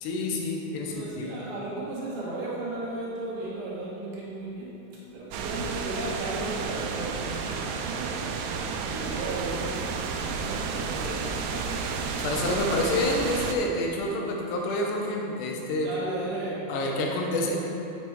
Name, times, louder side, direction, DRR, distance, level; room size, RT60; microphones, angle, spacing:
voice 1, 0.0-1.4 12.2-15.9 16.7-17.6, left 1 dB, 80° left, 0 dB, 3.0 m, -28 dB
voice 2, 0.7-4.8 5.1-8.1 8.9-11.3 15.8-16.7, right 2 dB, 65° right, -6 dB, 2.9 m, -35 dB
sound 1, 5.3-13.6, right 5 dB, 85° right, 2.6 m, -31 dB
7.5 x 6.0 x 4.5 m, 2.8 s
omnidirectional pair, 4.9 m